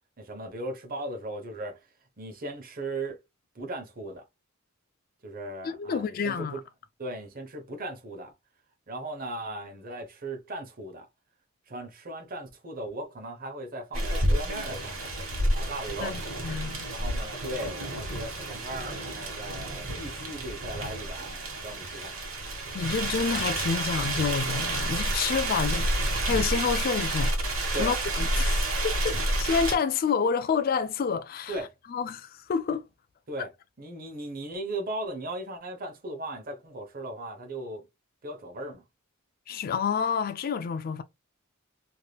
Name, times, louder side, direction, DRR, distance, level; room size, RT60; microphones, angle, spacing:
voice 1, 0.2-1.8 2.2-3.2 3.5-4.2 5.2-6.6 7.0-8.3 8.9-11.1 11.7-15.1 15.5-16.2 16.9-22.2 27.7-28.0 31.5-31.7 33.3-33.5 33.8-37.9 38.2-38.8, right 1 dB, 45° right, 0.9 m, -37 dB
voice 2, 5.6-6.6 16.0-16.9 22.7-31.6 31.9-32.8 33.4-33.5 39.5-41.0, left 6 dB, 45° left, 0.3 m, -29 dB
sound 1, 13.9-29.8, right 1 dB, 75° right, 1.7 m, -30 dB
3.3 x 2.8 x 2.3 m
head